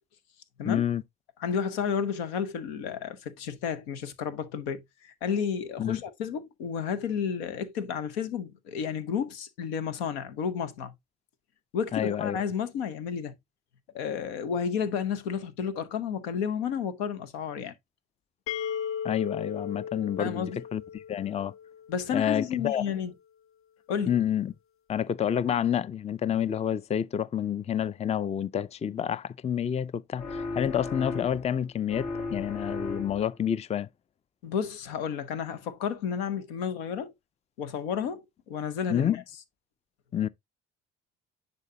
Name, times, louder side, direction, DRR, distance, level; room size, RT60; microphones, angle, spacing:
voice 1, 0.6-1.0 5.8-6.0 11.9-12.4 19.0-21.5 22.1-22.9 24.1-24.5 24.9-33.9 38.9-39.2 40.1-40.3, left 9 dB, 20° left, 0.4 m, -28 dB
voice 2, 1.4-10.9 11.7-13.3 13.9-17.7 20.2-20.6 21.9-23.1 23.9-24.2 34.4-37.1 37.6-39.1, left 7 dB, 85° left, 0.9 m, -31 dB
sound 1, 18.5-22.2, left 8 dB, 45° left, 0.8 m, -36 dB
sound 2, 30.2-31.6 31.9-33.4, left 3 dB, 60° left, 2.1 m, -36 dB
10.0 x 4.1 x 2.7 m
hypercardioid pair, 55°, 31 cm